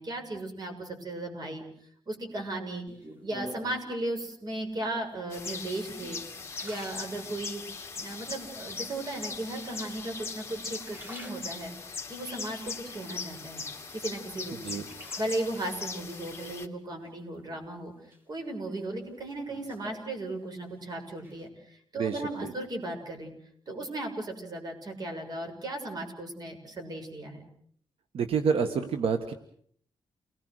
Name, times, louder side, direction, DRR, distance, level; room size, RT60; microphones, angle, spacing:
voice 1, 0.0-2.9 3.2-6.2 6.6-7.6 8.0-11.7 12.1-13.7 13.9-14.8 15.2-23.3 23.7-27.4, right 1 dB, 45° right, 4 dB, 7.0 m, -36 dB
sound 1, 2.9-3.9 4.7-5.2 5.7-7.7 8.2-8.8 9.6-10.3 10.6-11.9 12.4-13.6 14.0-15.7 17.0-17.7 18.1-20.7 21.0-21.5, equal, 20° right, 4.2 m, -48 dB
sound 2, 5.3-16.7, left 4 dB, 25° left, 2.6 m, -40 dB
voice 2, 22.0-22.5 28.1-29.3, right 6 dB, 80° right, 8 dB, 1.6 m, -28 dB
29.5 x 20.5 x 6.6 m, 0.63 s
cardioid pair, 115°, 10 cm